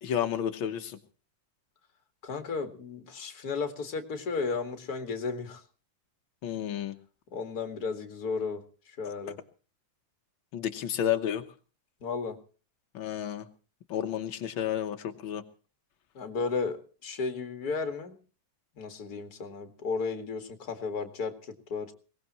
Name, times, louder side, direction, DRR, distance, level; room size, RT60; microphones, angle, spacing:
voice 1, 0.0-1.0 6.4-6.9 10.5-11.4 12.9-13.5 13.9-15.4, left 10 dB, 85° left, 6 dB, 1.1 m, -31 dB
voice 2, 2.2-5.6 7.3-9.4 12.0-12.4 16.1-18.2 18.8-21.9, left 4 dB, 35° left, 6 dB, 1.8 m, -34 dB
22.5 x 19.0 x 3.0 m, 0.37 s
omnidirectional pair, 3.8 m